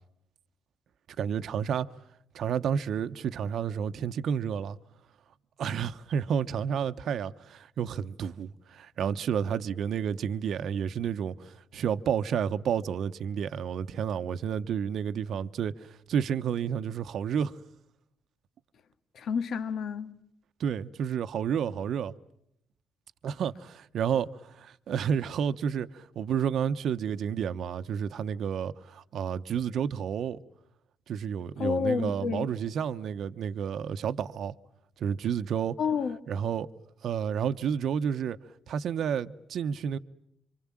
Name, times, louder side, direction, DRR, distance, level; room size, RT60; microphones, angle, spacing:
voice 1, 1.2-1.9 2.3-4.8 5.6-17.6 20.6-22.1 23.2-30.4 31.1-34.5 35.0-35.8 36.3-36.7 37.0-38.4 38.7-40.0, right 8 dB, 70° right, 1.0 m, -30 dB
voice 2, 19.1-20.2 31.6-32.5 35.8-36.2, left 6 dB, 65° left, 1.9 m, -29 dB
26.5 x 25.5 x 7.5 m
cardioid pair, 90°, 0 cm